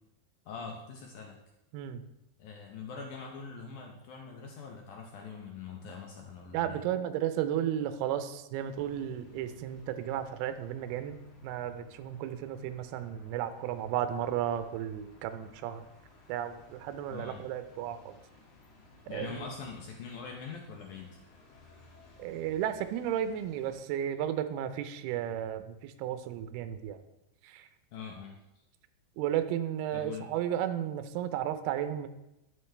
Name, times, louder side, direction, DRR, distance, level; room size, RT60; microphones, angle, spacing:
voice 1, 0.4-1.4 2.4-6.8 17.1-17.4 19.1-21.2 27.9-28.4 29.9-30.3, left 5 dB, 90° left, 1 dB, 1.7 m, -43 dB
voice 2, 1.7-2.1 6.5-11.2 11.4-15.8 16.3-18.1 19.1-19.5 22.2-27.0 27.4-27.7 29.2-32.1, right 10 dB, 80° right, 9 dB, 2.5 m, -34 dB
sound 1, 8.6-23.8, left 3 dB, 55° left, 1.4 m, -57 dB
12.5 x 8.3 x 3.3 m, 0.91 s
omnidirectional pair, 4.8 m